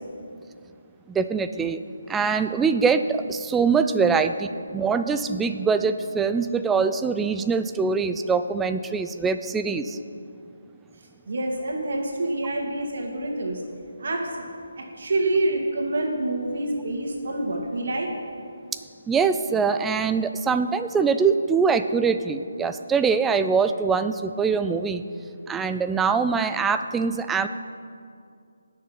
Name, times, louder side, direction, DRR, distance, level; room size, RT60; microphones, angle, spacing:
voice 1, 1.1-1.8 2.1-10.0 19.1-25.0 25.5-27.5, right 5 dB, 10° right, 9 dB, 0.4 m, -23 dB
voice 2, 11.3-13.6 14.0-14.4 14.8-18.1, right 2 dB, 60° right, 0 dB, 2.4 m, -27 dB
18.0 x 6.7 x 5.8 m, 2.4 s
figure-of-eight pair, 160°, 0 cm